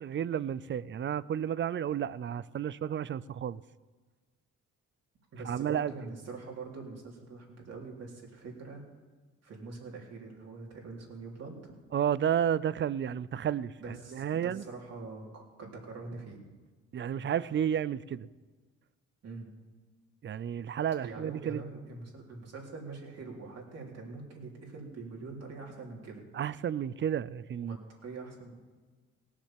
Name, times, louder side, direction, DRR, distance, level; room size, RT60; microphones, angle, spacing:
voice 1, 0.0-3.6 5.5-5.9 11.9-14.6 16.9-18.3 20.2-21.6 26.3-27.8, right 9 dB, 40° right, 20 dB, 0.5 m, -32 dB
voice 2, 5.3-8.8 9.4-11.7 13.8-16.4 19.2-19.5 21.0-26.2 27.6-28.6, right 3 dB, 55° right, -1 dB, 3.8 m, -44 dB
18.0 x 7.4 x 7.5 m, 1.4 s
cardioid pair, 90°, 30 cm